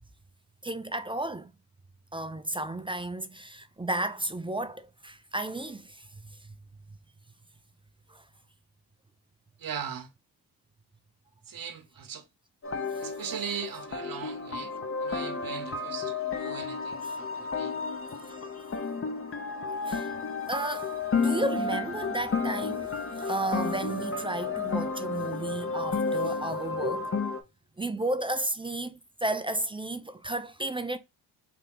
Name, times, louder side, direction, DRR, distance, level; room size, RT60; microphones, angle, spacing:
voice 1, 0.6-1.5 2.1-6.5 8.1-8.2 18.3-18.6 19.8-20.2 20.5-27.1 27.8-31.0, right 1 dB, 10° right, 0.4 m, -33 dB
voice 2, 9.6-10.1 11.5-12.3 13.0-14.7 15.0-17.7, right 7 dB, 45° right, 1.0 m, -39 dB
sound 1, 12.6-27.4, left 4 dB, 30° left, 0.8 m, -32 dB
3.5 x 2.7 x 3.8 m
supercardioid pair, 55°, 46 cm